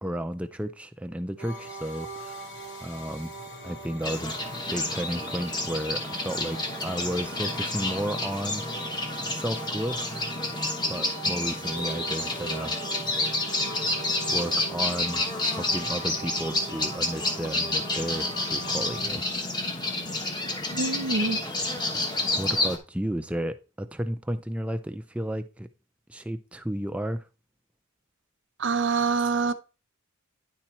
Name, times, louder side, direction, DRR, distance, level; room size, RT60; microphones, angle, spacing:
voice 1, 0.0-2.5 2.8-3.3 3.6-4.4 4.7-8.6 9.3-10.3 10.9-12.8 14.3-19.4 21.9-22.1 22.4-25.7 26.1-27.3, equal, 5° right, 0.4 m, -33 dB
sound 1, 1.4-19.0, right 2 dB, 50° left, 2.8 m, -41 dB
sound 2, 4.0-22.8, left 2 dB, 20° left, 1.1 m, -29 dB
voice 2, 20.7-21.4 28.6-29.5, right 4 dB, 55° right, 0.6 m, -25 dB
9.9 x 4.3 x 4.4 m
head